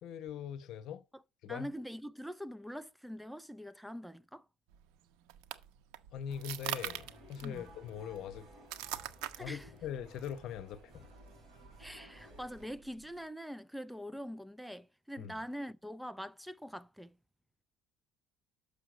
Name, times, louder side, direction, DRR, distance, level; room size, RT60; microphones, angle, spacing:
voice 1, 0.0-1.0 1.4-1.7 6.1-8.5 9.4-11.1 15.2-15.4, left 8 dB, 60° left, 0.9 m, -42 dB
voice 2, 1.5-4.5 7.4-7.7 9.4-9.7 11.8-17.1, equal, ahead, 0.4 m, -44 dB
sound 1, 4.7-13.3, right 13 dB, 85° right, 0.9 m, -45 dB
sound 2, 6.3-12.7, right 1 dB, 25° right, 5.9 m, -56 dB
6.8 x 6.4 x 6.2 m
cardioid pair, 120°, 0 cm